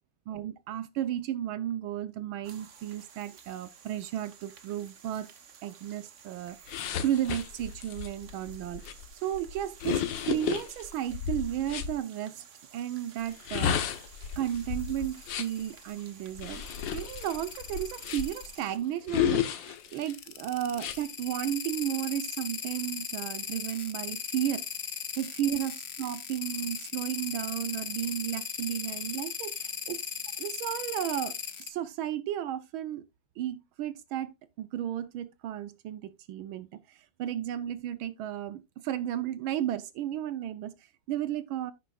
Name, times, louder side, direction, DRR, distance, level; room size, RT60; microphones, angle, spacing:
voice 1, 0.3-5.3 5.6-8.8 9.2-12.4 12.7-13.8 14.4-16.6 16.9-24.6 25.2-30.0 30.4-33.0 33.4-41.7, right 11 dB, 80° right, 1.5 m, -34 dB
sound 1, 2.4-18.8, right 7 dB, 50° right, 1.0 m, -54 dB
sound 2, 6.7-11.9 13.3-15.6 16.4-18.5 19.1-20.1 20.7-21.0, left 9 dB, 70° left, 1.6 m, -33 dB
sound 3, 13.2-13.9 14.5-15.8 16.5-18.7 19.8-31.7, left 7 dB, 50° left, 0.8 m, -38 dB
11.0 x 9.1 x 2.3 m
omnidirectional pair, 2.2 m